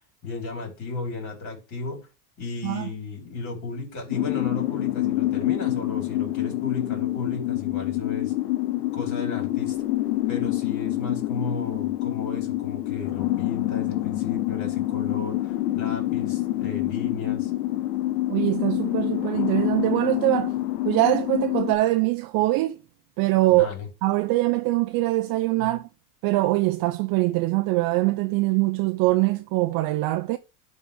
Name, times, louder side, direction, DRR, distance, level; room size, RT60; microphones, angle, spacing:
voice 1, 0.2-2.0 2.4-8.3 8.9-9.8 10.3-17.5 23.5-23.9 25.6-25.8, left 3 dB, 40° left, 5.1 m, -34 dB
sound 1, 4.1-21.7, left 16 dB, 85° left, 1.2 m, -27 dB
voice 2, 18.3-20.6 20.8-22.8 23.2-23.7 24.0-25.9 26.2-30.4, right 19 dB, 50° right, 0.6 m, -23 dB
11.5 x 4.2 x 3.7 m
supercardioid pair, 110°, 45 cm